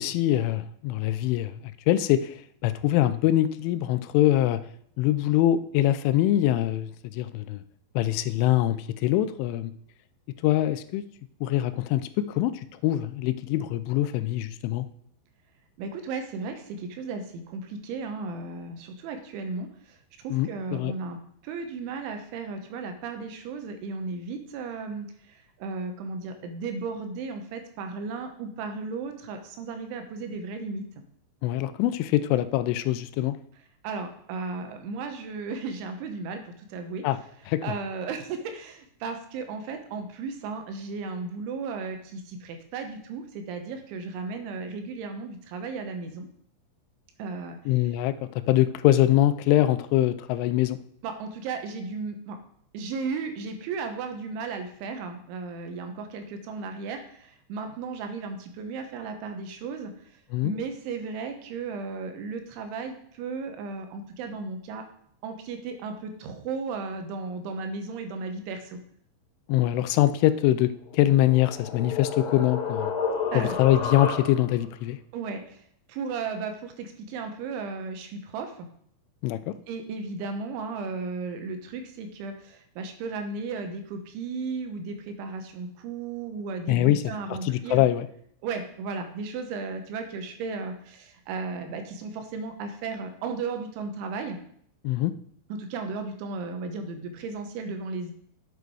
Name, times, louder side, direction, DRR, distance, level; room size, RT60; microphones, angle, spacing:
voice 1, 0.0-1.5 1.9-2.3 2.6-4.6 5.0-6.9 7.1-7.6 8.0-9.7 10.4-11.0 11.4-12.5 12.8-14.9 20.3-20.9 31.4-33.4 37.0-37.2 37.5-37.7 47.7-48.2 48.5-50.8 60.3-60.5 69.5-72.9 73.3-75.0 79.2-79.5 86.7-87.0 87.3-88.1 94.8-95.1, left 14 dB, 85° left, 13 dB, 3.0 m, -23 dB
voice 2, 15.8-19.7 20.2-21.2 21.4-25.1 25.6-31.0 33.8-37.0 37.6-46.3 47.2-47.6 51.0-52.4 52.7-59.9 60.4-64.8 65.2-68.8 73.3-73.5 75.1-75.6 75.9-78.7 79.7-87.8 88.4-94.4 95.5-98.1, right 4 dB, 75° right, 6 dB, 3.4 m, -35 dB
sound 1, 70.9-74.6, left 5 dB, 60° left, 2.6 m, -31 dB
9.9 x 8.1 x 4.7 m, 0.65 s
omnidirectional pair, 5.6 m